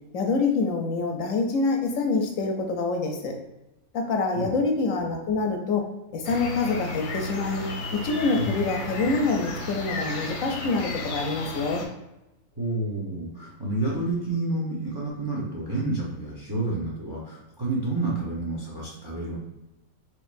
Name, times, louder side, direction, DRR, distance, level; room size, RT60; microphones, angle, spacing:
voice 1, 0.1-3.3 3.9-5.8 6.1-7.7 8.0-11.8, left 3 dB, 70° left, 3 dB, 0.9 m, -26 dB
sound 1, 6.2-11.8, left 2 dB, 90° left, 1.1 m, -33 dB
voice 2, 12.6-19.4, right 2 dB, 30° right, -4 dB, 0.4 m, -29 dB
4.4 x 2.7 x 2.5 m, 0.94 s
omnidirectional pair, 1.5 m